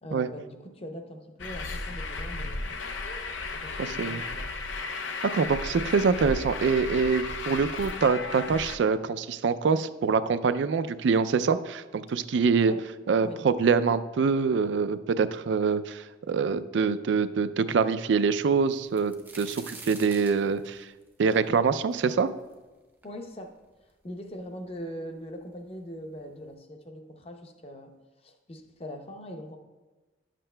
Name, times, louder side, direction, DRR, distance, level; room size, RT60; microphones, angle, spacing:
voice 1, 0.0-2.8 3.5-4.5 12.3-12.8 13.2-13.4 23.0-23.5 24.0-27.9 28.2-29.6, equal, 30° left, 5 dB, 0.6 m, -41 dB
Truck, 1.4-8.8, left 3 dB, 85° left, 0.6 m, -34 dB
voice 2, 3.8-4.2 5.2-12.7 13.1-20.9 21.2-22.3, right 5 dB, 75° right, 12 dB, 0.3 m, -25 dB
sound 1, 18.7-22.5 23.0-23.1 23.9-24.0 24.2-24.9 25.8-25.9 26.3-26.5, right 3 dB, 10° right, 0.5 m, -46 dB
11.0 x 7.5 x 2.2 m, 1.2 s
head